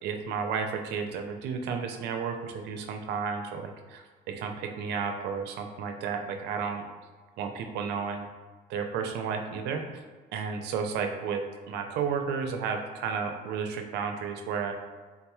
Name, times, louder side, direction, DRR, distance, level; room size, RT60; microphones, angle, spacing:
voice 1, 0.0-6.8 7.4-8.3 8.7-10.0 10.3-14.7, right 6 dB, 80° right, 5 dB, 0.4 m, -32 dB
3.6 x 2.9 x 2.3 m, 1.4 s
cardioid pair, 110°, 17 cm